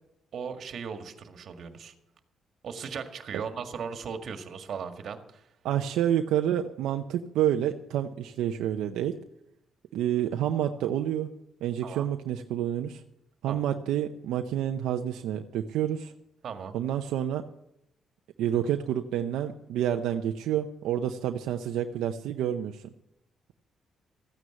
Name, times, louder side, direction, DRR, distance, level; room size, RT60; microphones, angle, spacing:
voice 1, 0.3-1.9 2.6-5.5 11.8-12.1 13.5-13.6 16.4-16.8, right 6 dB, 60° right, 7 dB, 1.8 m, -37 dB
voice 2, 5.6-9.1 9.9-11.3 11.6-13.0 13.4-16.1 16.7-17.4 18.4-22.9, right 10 dB, 85° right, 5 dB, 0.7 m, -28 dB
14.5 x 9.6 x 7.8 m, 0.80 s
cardioid pair, 90°, 0 cm